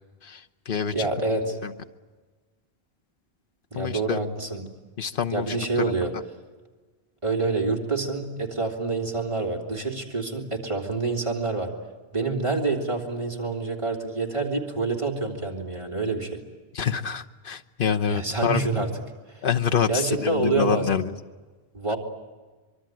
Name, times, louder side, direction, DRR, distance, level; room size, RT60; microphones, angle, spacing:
voice 1, 0.2-1.1 1.6-1.7 3.7-4.2 5.0-5.6 5.9-6.0 16.7-18.7 19.4-21.1 21.9-22.0, left 7 dB, 60° left, 6 dB, 1.2 m, -26 dB
voice 2, 0.9-1.6 3.7-4.6 5.3-6.1 7.2-11.7 12.1-16.4 18.1-18.9 19.9-20.8 21.7-22.0, right 3 dB, 30° right, 1 dB, 3.4 m, -27 dB
24.5 x 23.0 x 9.2 m, 1.3 s
omnidirectional pair, 1.0 m